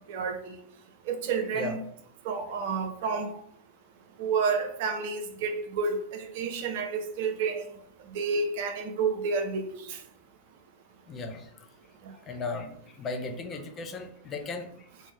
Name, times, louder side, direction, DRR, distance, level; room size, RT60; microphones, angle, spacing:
voice 1, 0.1-0.6 1.1-1.8 2.2-3.4 4.2-7.7 8.1-10.0 12.0-12.1, right 5 dB, 50° right, 0.4 m, -30 dB
voice 2, 11.1-11.7 12.3-14.9, left 3 dB, 25° left, 0.4 m, -36 dB
2.5 x 2.0 x 3.0 m
figure-of-eight pair, 90°, 0 cm